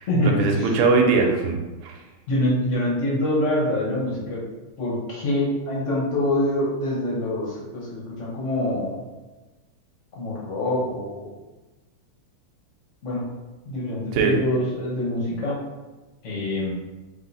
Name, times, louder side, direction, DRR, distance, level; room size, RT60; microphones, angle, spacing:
voice 1, 0.0-2.0 14.1-14.3, right 4 dB, 85° right, 2 dB, 1.5 m, -21 dB
voice 2, 2.3-4.4 4.8-9.0 10.1-11.3 13.0-13.2 13.7-15.6 16.2-16.7, left 1 dB, 45° left, -5 dB, 1.1 m, -25 dB
3.6 x 2.7 x 4.0 m, 1.2 s
omnidirectional pair, 2.3 m